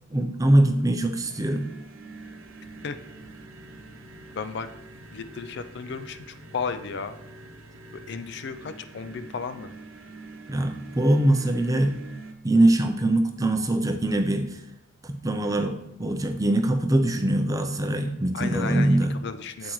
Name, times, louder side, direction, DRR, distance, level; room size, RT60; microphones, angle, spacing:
voice 1, 0.1-1.7 10.5-12.0 12.4-14.6 15.0-19.2 19.6-19.7, right 1 dB, 15° right, 6 dB, 0.5 m, -23 dB
sound 1, 1.2-12.3, right 3 dB, 70° right, 0.8 m, -45 dB
voice 2, 4.3-4.7 5.1-7.2 7.9-9.7 18.3-19.7, left 5 dB, 50° left, 11 dB, 0.4 m, -34 dB
8.3 x 7.5 x 3.1 m, 0.85 s
head